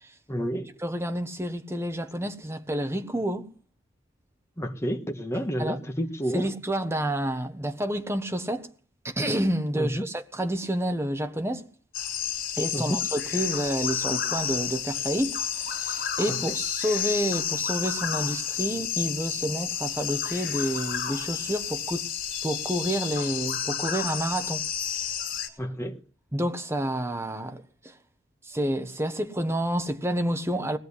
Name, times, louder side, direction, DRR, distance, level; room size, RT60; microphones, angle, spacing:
voice 1, 0.3-0.7 4.6-6.5 9.7-10.1 12.7-13.0 16.5-16.6 25.6-26.0, equal, 15° left, 1.5 m, -30 dB
voice 2, 0.8-3.5 5.6-5.8 6.3-8.7 9.0-11.7 12.6-22.0 22.4-24.7 26.3-27.9 28.5-30.8, right 1 dB, 15° right, 1.2 m, -29 dB
sound 1, 11.9-25.5, left 8 dB, 50° left, 3.2 m, -31 dB
19.0 x 7.9 x 8.2 m
head